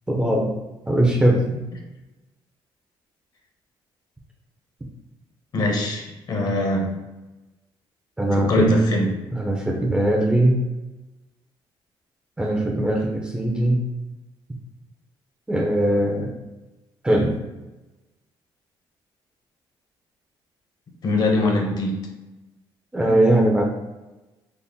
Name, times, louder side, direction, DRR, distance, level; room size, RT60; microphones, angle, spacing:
voice 1, 0.1-0.5 0.9-1.6 8.2-8.8 9.3-10.6 12.4-13.9 15.5-16.4 17.0-17.4 22.9-23.6, right 1 dB, 10° right, 0 dB, 0.6 m, -20 dB
voice 2, 5.5-7.0 8.3-9.1 21.0-22.1, left 1 dB, 45° left, 1 dB, 0.8 m, -22 dB
4.1 x 2.1 x 3.6 m, 1.1 s
cardioid pair, 120°, 9 cm